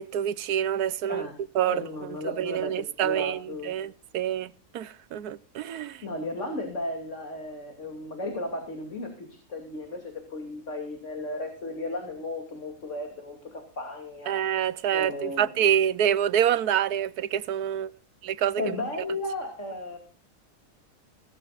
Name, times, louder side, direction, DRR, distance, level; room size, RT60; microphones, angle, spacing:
voice 1, 0.0-1.2 1.5-1.8 2.2-6.0 14.3-17.9 18.2-18.6, right 10 dB, 85° right, 1.3 m, -27 dB
voice 2, 1.7-3.7 6.0-14.4 14.9-15.5 18.6-20.0, left 2 dB, 50° left, 3.0 m, -35 dB
18.0 x 16.0 x 2.4 m
omnidirectional pair, 1.6 m